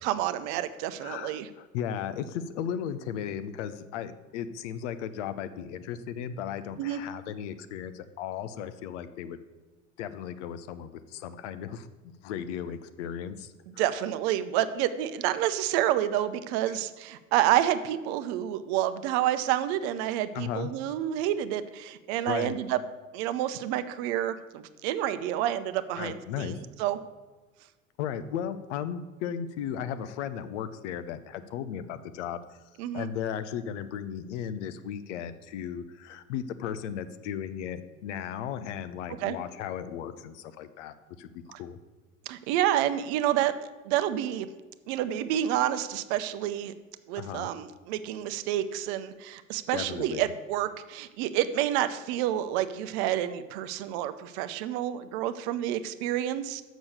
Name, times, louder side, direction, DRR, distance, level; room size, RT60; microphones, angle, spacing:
voice 1, 0.0-1.5 6.8-7.0 13.8-22.8 23.1-26.5 26.8-27.0 32.8-33.1 39.2-39.4 41.5-41.6 42.3-43.5 43.8-44.5 44.9-46.7 47.1-56.6, right 12 dB, 55° right, 12 dB, 0.7 m, -29 dB
voice 2, 1.0-9.4 10.0-13.8 16.7-16.8 20.3-20.7 22.3-22.6 26.0-26.6 28.0-32.6 32.9-41.8 47.2-47.5 49.7-50.3, left 9 dB, 60° left, 12 dB, 0.7 m, -36 dB
7.0 x 6.2 x 6.6 m, 1.3 s
figure-of-eight pair, 75°, 40 cm